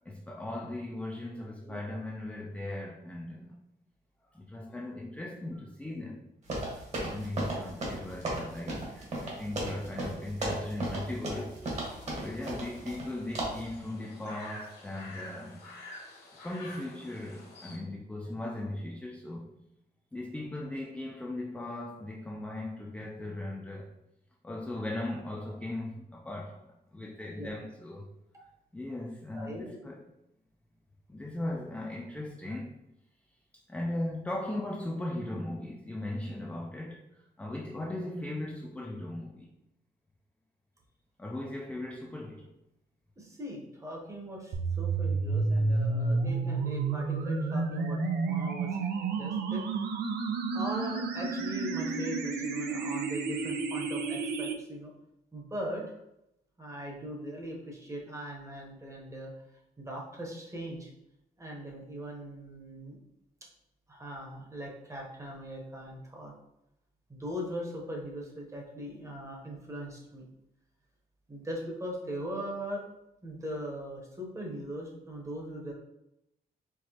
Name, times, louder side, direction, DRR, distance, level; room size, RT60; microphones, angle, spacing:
voice 1, 0.1-3.6 4.3-6.2 6.7-11.7 12.2-15.6 16.4-19.5 20.1-23.9 24.4-28.1 28.4-28.5 28.7-30.0 31.1-32.7 33.7-39.5 41.2-42.5, left 1 dB, 10° left, -2 dB, 0.4 m, -38 dB
sound 1, 6.5-13.1 13.4-13.7, right 1 dB, 45° right, 1.3 m, -35 dB
sound 2, 11.6-17.8, left 2 dB, 85° left, 1.2 m, -49 dB
voice 2, 29.3-29.9 43.2-54.9 55.3-55.8 56.6-59.3 59.8-60.9 61.4-63.0 63.9-66.3 67.1-70.2 71.3-72.8 73.2-75.7, equal, 20° right, -1 dB, 0.9 m, -40 dB
sound 3, 44.5-54.5, right 4 dB, 80° right, 0.5 m, -30 dB
4.6 x 3.1 x 2.9 m, 0.85 s
wide cardioid pair, 155°, 17 cm